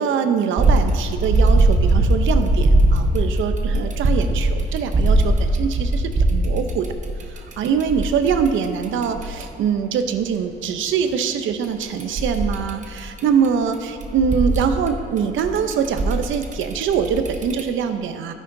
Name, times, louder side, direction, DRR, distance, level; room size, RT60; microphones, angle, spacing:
voice 1, 0.0-6.9 7.3-18.3, right 7 dB, 80° right, 8 dB, 0.7 m, -23 dB
sound 1, 0.6-9.4 11.6-13.4 13.7-17.6, right 2 dB, 40° right, 1.0 m, -20 dB
12.5 x 9.9 x 2.7 m, 2.5 s
cardioid pair, 90°, 20 cm